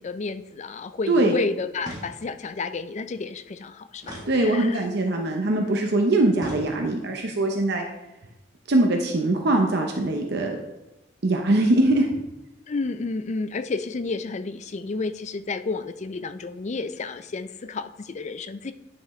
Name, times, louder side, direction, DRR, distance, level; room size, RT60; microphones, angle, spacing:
voice 1, 0.0-4.8 12.7-18.7, left 3 dB, 40° left, 11 dB, 0.4 m, -31 dB
sound 1, 1.8-2.5 4.0-5.0 6.3-7.2, right 1 dB, 20° right, 1.9 m, -40 dB
voice 2, 4.3-7.8 8.7-10.6 11.2-12.1, right 2 dB, 60° right, 2 dB, 0.8 m, -22 dB
9.9 x 5.9 x 3.2 m, 0.95 s
head